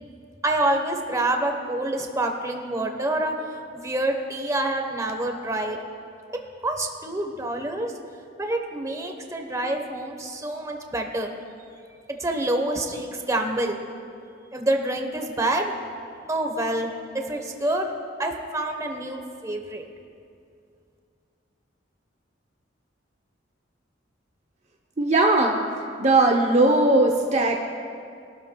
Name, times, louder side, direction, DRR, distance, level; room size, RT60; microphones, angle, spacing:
voice 1, 0.4-3.3 3.7-5.8 6.6-7.9 8.4-11.3 12.2-13.8 14.5-15.7 16.3-17.9 18.2-19.8, right 1 dB, 20° right, 3 dB, 1.0 m, -27 dB
voice 2, 25.0-25.6 26.0-27.6, right 2 dB, 40° right, 1 dB, 0.7 m, -19 dB
21.5 x 12.5 x 2.3 m, 2.4 s
head